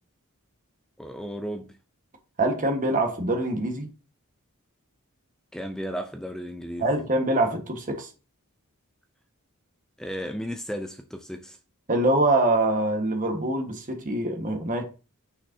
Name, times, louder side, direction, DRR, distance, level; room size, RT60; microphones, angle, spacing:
voice 1, 1.0-1.8 5.5-6.9 10.0-11.6, equal, 5° left, 0.4 m, -34 dB
voice 2, 2.4-3.9 6.8-8.1 11.9-14.8, right 2 dB, 40° right, 1.4 m, -24 dB
6.3 x 6.1 x 2.7 m
head